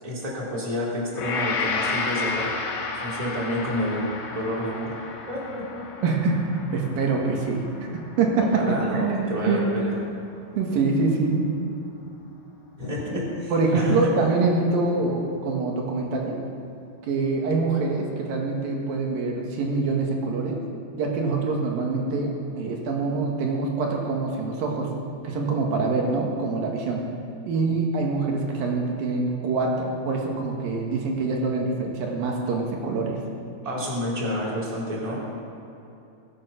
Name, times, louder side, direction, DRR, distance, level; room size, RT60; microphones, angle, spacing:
voice 1, 0.0-2.5 3.0-4.9 5.3-5.8 8.5-9.9 12.8-14.1 33.6-35.2, left 1 dB, 10° right, -5 dB, 2.5 m, -29 dB
Gong, 1.1-9.5 9.9-10.1, left 4 dB, 65° left, 3.1 m, -32 dB
voice 2, 6.0-6.4 6.7-8.6 8.9-9.7 10.5-11.5 13.1-13.2 13.5-16.4 17.0-20.6 21.0-24.9 25.2-27.0 27.5-33.2, right 3 dB, 60° right, 0 dB, 2.7 m, -25 dB
22.0 x 9.0 x 5.8 m, 2.8 s
omnidirectional pair, 5.9 m